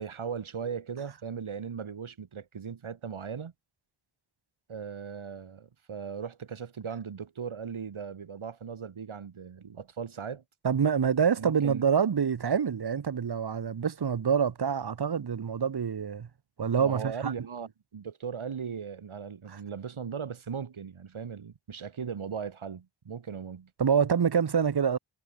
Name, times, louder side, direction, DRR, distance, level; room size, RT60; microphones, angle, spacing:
voice 1, 0.0-3.5 4.7-10.4 11.4-11.8 16.8-23.7, right 6 dB, 90° right, 7.9 m, -38 dB
voice 2, 10.6-16.3 16.6-17.3 23.8-25.0, right 7 dB, 55° right, 1.4 m, -26 dB
wide cardioid pair, 100°, 47 cm